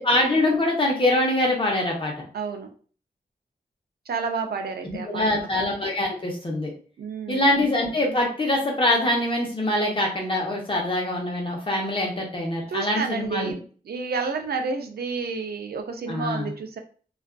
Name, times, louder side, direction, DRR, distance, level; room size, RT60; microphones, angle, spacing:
voice 1, 0.0-2.2 5.0-6.7 7.3-13.5 16.1-16.5, left 1 dB, 35° left, -1 dB, 0.8 m, -24 dB
voice 2, 2.3-2.7 4.1-5.6 7.0-7.6 12.7-16.8, right 4 dB, 80° right, 5 dB, 0.4 m, -30 dB
2.4 x 2.3 x 2.2 m, 0.41 s
wide cardioid pair, 110°, 16 cm